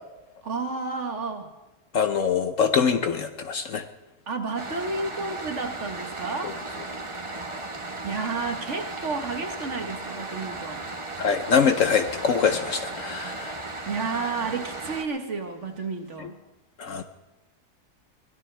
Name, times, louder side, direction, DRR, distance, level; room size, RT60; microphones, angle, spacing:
voice 1, 0.4-1.5 4.3-6.6 8.0-10.9 13.9-16.4, right 4 dB, 50° right, 5 dB, 1.6 m, -31 dB
voice 2, 1.9-3.8 11.2-13.5 16.2-16.3 16.8-17.0, left 6 dB, 60° left, 8 dB, 1.0 m, -24 dB
sound 1, 4.6-15.1, right 2 dB, 20° right, 1.1 m, -36 dB
23.5 x 17.0 x 3.3 m, 1.1 s
omnidirectional pair, 1.7 m